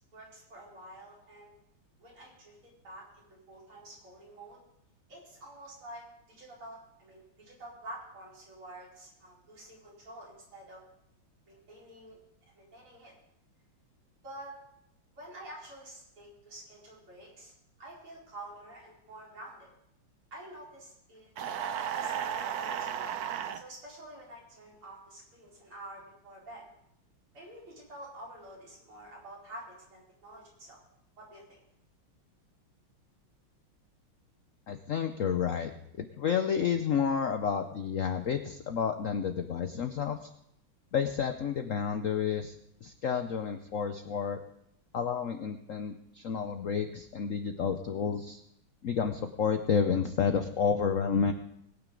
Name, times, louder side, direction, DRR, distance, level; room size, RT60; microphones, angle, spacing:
voice 1, 0.1-1.5 2.0-3.0 3.5-4.6 5.1-10.8 11.5-12.2 12.5-13.1 14.2-14.5 15.2-17.5 17.8-19.7 20.3-21.3 21.7-23.1 23.5-26.7 27.3-30.8 31.2-31.6, right 1 dB, 85° right, -5 dB, 5.3 m, -48 dB
sound 1, 21.4-23.6, right 8 dB, 65° right, 1.0 m, -34 dB
voice 2, 34.7-35.7 36.0-40.3 40.9-42.6 42.8-44.4 44.9-48.4 48.8-51.3, left 7 dB, 85° left, 8 dB, 0.7 m, -30 dB
21.5 x 9.2 x 3.8 m, 0.76 s
omnidirectional pair, 2.3 m